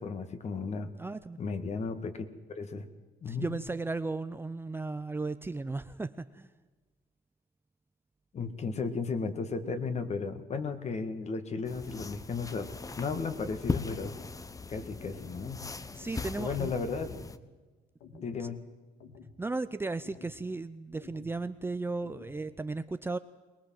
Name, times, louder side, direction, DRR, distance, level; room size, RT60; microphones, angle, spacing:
voice 1, 0.0-0.9 1.4-2.8 3.2-3.5 8.3-12.7 13.0-14.2 14.7-15.6 16.4-17.2 18.2-18.6, left 4 dB, 40° left, 9 dB, 2.2 m, -34 dB
voice 2, 1.0-1.4 3.3-6.5 15.9-16.7 18.1-18.5 19.4-23.2, right 3 dB, 15° right, 11 dB, 0.6 m, -35 dB
sound 1, 11.6-17.4, left 4 dB, 20° left, 1.0 m, -39 dB
sound 2, 14.0-14.4 15.0-15.4 16.0-16.4 17.0-17.4 18.0-18.4 19.0-19.4 20.0-20.4 21.0-21.4 22.0-22.4, left 5 dB, 85° left, 2.5 m, -52 dB
22.5 x 20.5 x 7.8 m, 1.3 s
cardioid pair, 110°, 17 cm